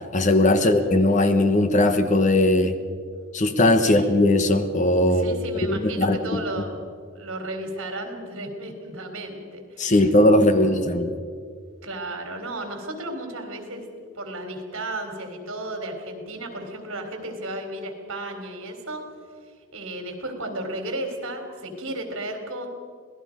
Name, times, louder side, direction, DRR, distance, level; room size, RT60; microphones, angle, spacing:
voice 1, 0.1-2.7 3.3-5.4 5.6-6.4 9.8-11.1, left 1 dB, 35° left, 8 dB, 1.1 m, -19 dB
voice 2, 5.1-6.8 7.2-10.8 11.8-13.8 14.2-19.0 19.7-22.7, right 1 dB, 65° right, 5 dB, 3.5 m, -34 dB
26.5 x 18.5 x 5.2 m, 2.1 s
head